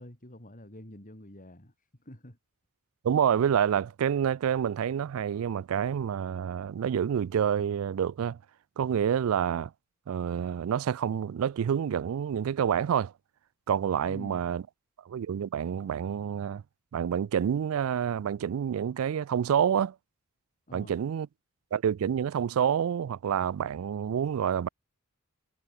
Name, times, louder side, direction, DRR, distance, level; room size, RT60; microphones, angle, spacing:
voice 1, 0.0-2.4 14.0-14.5 20.7-21.0, left 1 dB, 40° left, 5.2 m, -47 dB
voice 2, 3.0-8.4 8.8-9.7 10.1-13.1 13.7-14.6 15.1-16.6 16.9-19.9 20.7-21.3 21.7-24.7, right 8 dB, 70° right, 0.3 m, -28 dB
head